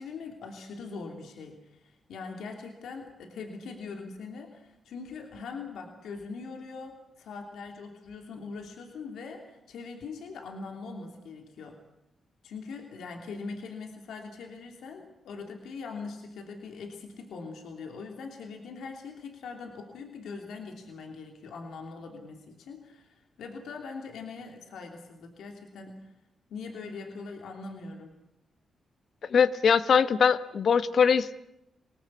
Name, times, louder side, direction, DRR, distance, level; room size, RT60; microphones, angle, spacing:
voice 1, 0.0-11.8 12.4-26.0 26.5-28.1, left 4 dB, 90° left, 3 dB, 3.0 m, -42 dB
voice 2, 29.3-31.3, left 6 dB, 65° left, 13 dB, 1.1 m, -22 dB
26.0 x 19.0 x 8.6 m, 0.87 s
cardioid pair, 95°, 0 cm